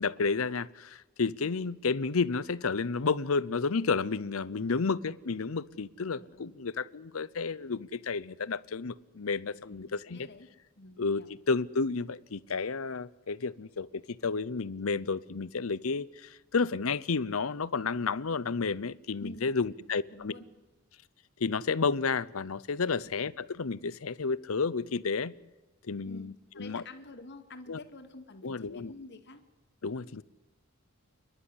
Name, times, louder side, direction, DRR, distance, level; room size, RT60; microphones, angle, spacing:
voice 1, 0.0-10.3 11.0-20.3 21.4-25.3 25.8-26.8 27.7-27.8 28.4-28.9 29.8-30.2, left 4 dB, 75° left, 0.7 m, -31 dB
voice 2, 4.4-4.9 6.0-6.5 9.5-10.5 10.8-11.3 19.2-19.8 20.1-20.5 23.0-23.2 26.1-26.3 26.5-29.4, left 2 dB, 55° left, 2.3 m, -49 dB
28.5 x 11.5 x 9.9 m
head